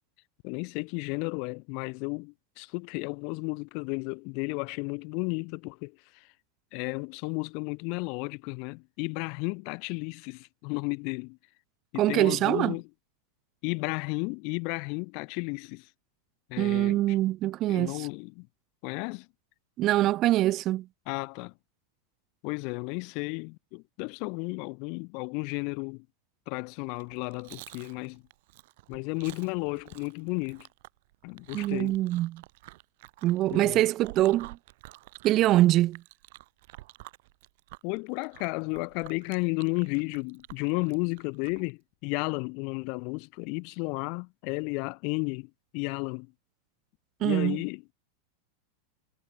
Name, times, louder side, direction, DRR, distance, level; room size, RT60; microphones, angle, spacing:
voice 1, 0.4-6.3 6.7-11.4 11.9-12.8 13.6-15.9 16.5-17.0 17.7-18.5 18.8-19.3 21.1-21.5 22.4-26.1 26.5-28.2 28.9-30.7 31.2-31.9 33.5-33.8 37.8-46.3 47.2-47.8, left 35 dB, 45° left, 1.1 m, -33 dB
voice 2, 12.0-12.8 16.6-18.1 19.8-20.9 31.5-32.4 33.2-34.6 35.2-36.0 47.2-47.6, right 15 dB, 35° right, 0.4 m, -24 dB
Chewing mastication, 26.9-41.7, right 20 dB, 50° right, 7.6 m, -50 dB
figure-of-eight pair, 90°, 0 cm